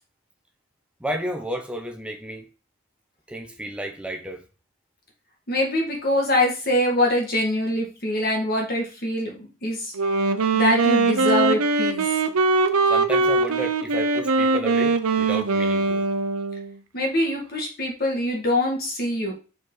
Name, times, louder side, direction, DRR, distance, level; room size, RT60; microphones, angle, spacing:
voice 1, 1.0-2.5 3.3-4.4 12.9-16.1, right 1 dB, 5° right, 0.8 m, -32 dB
voice 2, 5.5-9.9 10.5-12.1 16.9-19.3, left 1 dB, 45° left, 1.8 m, -24 dB
Wind instrument woodwind instrument, 9.9-16.7, right 3 dB, 85° right, 0.7 m, -21 dB
5.4 x 4.6 x 3.9 m
head